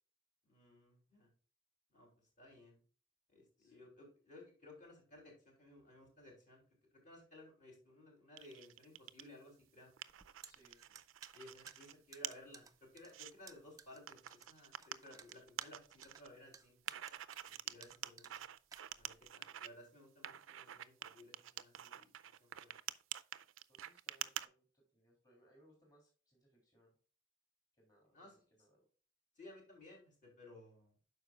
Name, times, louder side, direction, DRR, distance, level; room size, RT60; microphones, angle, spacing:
voice 1, 0.4-1.3 1.9-2.1 2.4-2.8 3.3-6.6 7.0-9.9 11.3-16.8 17.5-18.4 18.9-22.1 22.4-22.7 28.1-28.3 29.4-30.9, left 1 dB, 40° left, -1 dB, 3.1 m, -58 dB
sound 1, 8.4-9.3 9.7-11.9 12.2-12.3 12.8-13.3 14.1-16.3 16.9-19.7 20.2-24.5, right 12 dB, 80° right, 0.4 m, -47 dB
sound 2, 10.1-19.3, right 5 dB, 15° right, 0.4 m, -59 dB
voice 2, 10.4-10.8 11.6-11.8 23.7-27.0 27.7-28.8, equal, 20° left, -2 dB, 3.0 m, -70 dB
12.0 x 4.9 x 2.4 m, 0.39 s
head